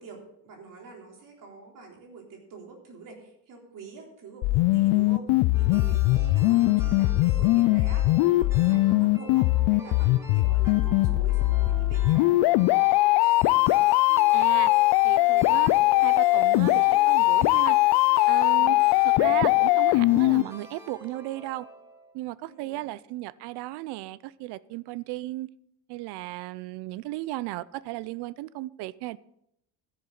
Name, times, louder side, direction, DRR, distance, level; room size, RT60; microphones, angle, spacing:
voice 1, 0.0-12.6 22.4-22.9, right 4 dB, 50° right, 0 dB, 3.7 m, -47 dB
sound 1, 4.4-20.4, left 19 dB, 75° left, 0.5 m, -21 dB
sound 2, 5.5-22.1, equal, 5° right, 2.6 m, -46 dB
voice 2, 14.3-14.7 15.0-15.8 16.0-17.8 18.3-18.8 19.0-21.7 22.1-25.5 25.9-29.2, right 17 dB, 70° right, 20 dB, 0.6 m, -35 dB
13.5 x 11.0 x 3.9 m, 0.75 s
cardioid pair, 150°, 41 cm